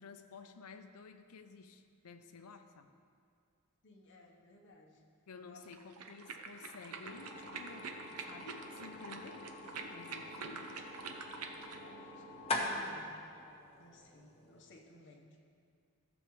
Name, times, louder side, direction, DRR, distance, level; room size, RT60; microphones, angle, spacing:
voice 1, 0.0-2.9 5.3-9.5 9.9-10.8, left 4 dB, 80° left, 9 dB, 0.6 m, -53 dB
voice 2, 3.8-5.0 5.5-5.6 11.4-13.1 13.8-15.3, left 1 dB, 55° left, 0 dB, 1.1 m, -59 dB
sound 1, 5.6-11.8, right 4 dB, 90° right, 0.7 m, -46 dB
sound 2, 7.0-14.8, left 2 dB, 25° left, 0.9 m, -44 dB
14.5 x 7.1 x 3.2 m, 2.4 s
head